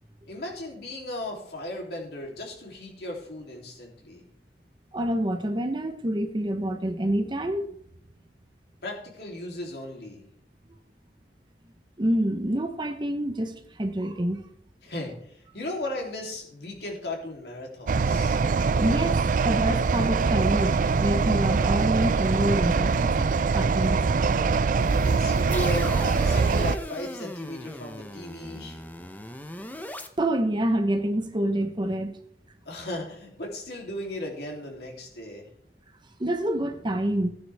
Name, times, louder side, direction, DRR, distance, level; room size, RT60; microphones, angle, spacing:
voice 1, 0.2-4.2 8.8-10.3 14.8-18.4 24.8-26.0 26.2-28.8 32.6-35.5, left 1 dB, 65° left, -1 dB, 3.0 m, -36 dB
voice 2, 4.9-7.7 12.0-14.4 18.8-23.3 23.5-24.0 30.2-32.2 36.2-37.3, right 1 dB, 25° right, 7 dB, 0.9 m, -27 dB
sound 1, 17.9-26.8, right 4 dB, 50° right, 0.4 m, -23 dB
sound 2, 24.8-30.1, left 1 dB, 10° left, 0.7 m, -39 dB
15.0 x 9.5 x 3.5 m, 0.67 s
head